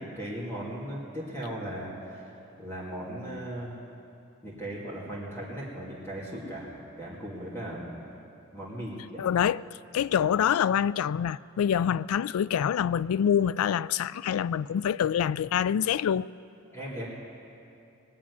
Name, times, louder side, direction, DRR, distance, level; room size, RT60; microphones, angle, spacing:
voice 1, 0.0-3.8 4.4-6.7 7.0-8.0 8.5-9.3 16.7-17.1, right 1 dB, 10° left, 2.5 m, -37 dB
voice 2, 9.2-9.6 9.9-16.3, left 8 dB, 90° left, 0.3 m, -26 dB
20.0 x 7.3 x 9.6 m
head